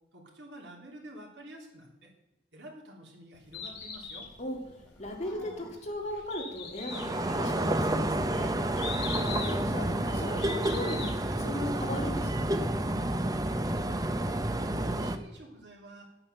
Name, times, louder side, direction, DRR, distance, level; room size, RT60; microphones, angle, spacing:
voice 1, 0.1-2.1 2.5-4.3 13.6-16.1, right 1 dB, 80° right, 0 dB, 3.2 m, -49 dB
Bird, 3.3-11.3, left 6 dB, 75° left, 3.8 m, -42 dB
sound 1, 4.7-6.1 6.6-8.2, equal, 5° left, 2.2 m, -52 dB
voice 2, 5.0-8.6 9.2-12.7, left 1 dB, 40° left, 1 dB, 2.4 m, -37 dB
sound 2, 6.9-15.2, right 1 dB, 20° right, 0.7 m, -30 dB
11.0 x 8.9 x 6.8 m, 0.97 s
head